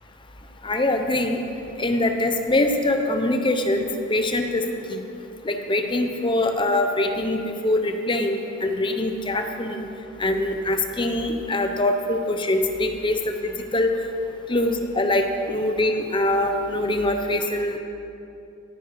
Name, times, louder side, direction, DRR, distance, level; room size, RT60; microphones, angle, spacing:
voice 1, 0.6-1.4 1.8-4.6 4.9-5.0 5.4-9.8 10.2-13.2 13.4-13.9 14.5-17.8, left 1 dB, 25° left, 5 dB, 0.8 m, -23 dB
18.0 x 9.9 x 4.7 m, 2.8 s
head